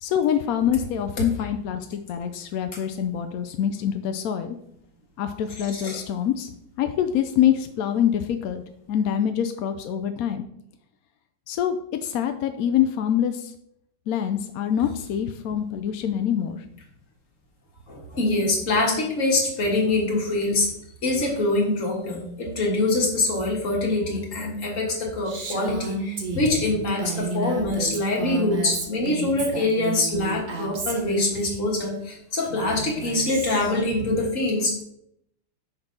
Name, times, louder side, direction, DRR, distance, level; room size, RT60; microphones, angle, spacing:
voice 1, 0.0-4.6 5.2-6.5 6.8-8.6 8.9-10.4 11.5-13.5 14.1-16.7 26.4-26.5, left 9 dB, 75° left, 7 dB, 0.8 m, -25 dB
voice 2, 5.7-6.0 17.9-20.7 21.0-34.8, left 2 dB, 45° left, -1 dB, 1.9 m, -24 dB
Female speech woman speaking, 25.3-31.6 32.4-33.8, right 4 dB, 40° right, 0.7 m, -32 dB
6.0 x 4.2 x 5.1 m, 0.74 s
omnidirectional pair, 2.0 m